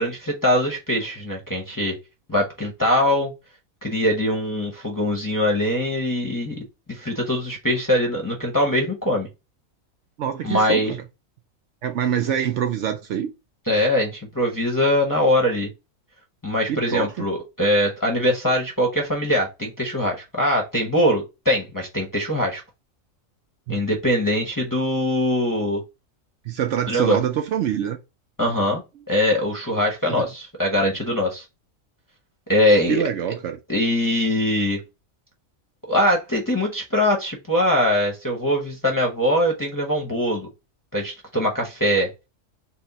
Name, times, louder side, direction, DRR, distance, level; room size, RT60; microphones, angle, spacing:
voice 1, 0.0-1.9 2.3-3.3 3.8-9.3 10.4-10.9 13.7-15.7 16.4-22.6 23.7-25.8 26.9-27.2 28.4-28.8 29.1-31.4 32.5-33.0 33.7-34.8 35.9-40.5 40.9-42.1, left 1 dB, 20° left, 0.7 m, -22 dB
voice 2, 10.2-11.0 11.8-13.3 16.7-17.2 23.7-23.8 26.5-28.0 30.1-30.3 32.9-33.6, right 9 dB, 65° right, 0.8 m, -25 dB
4.2 x 2.1 x 4.0 m
omnidirectional pair, 1.4 m